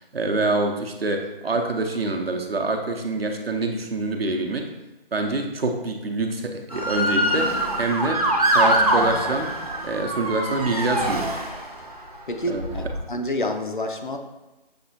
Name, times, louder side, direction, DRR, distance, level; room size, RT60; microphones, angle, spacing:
voice 1, 0.1-4.7 5.1-8.2 8.5-9.5 9.8-11.3 12.5-12.8, right 2 dB, 75° right, 4 dB, 0.7 m, -26 dB
Motor vehicle (road) / Siren, 6.7-11.9 12.6-13.0, right 1 dB, 40° right, 0.6 m, -24 dB
voice 2, 12.3-14.2, left 1 dB, 55° left, 4 dB, 0.5 m, -28 dB
6.6 x 2.3 x 2.8 m, 1.0 s
figure-of-eight pair, 165°, 30 cm